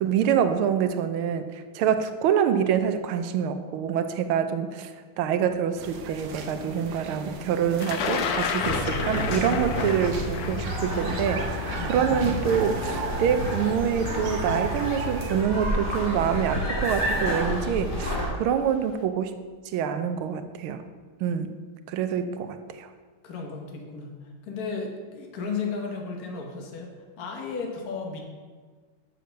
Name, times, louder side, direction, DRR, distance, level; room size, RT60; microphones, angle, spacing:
voice 1, 0.0-4.9 5.2-19.4 19.7-20.8 21.2-21.6 21.9-22.9, right 8 dB, 90° right, 9 dB, 1.5 m, -26 dB
sound 1, 5.8-15.4, right 5 dB, 60° right, 1.2 m, -39 dB
Thunder, 7.8-13.8 14.7-14.8 16.0-16.2 16.5-17.0, left 6 dB, 65° left, 0.9 m, -32 dB
sound 2, 8.6-18.3, equal, 30° left, 2.4 m, -29 dB
voice 2, 11.8-12.2 23.2-28.2, left 4 dB, 50° left, 1 dB, 1.6 m, -34 dB
6.9 x 6.7 x 6.4 m, 1.5 s
omnidirectional pair, 2.3 m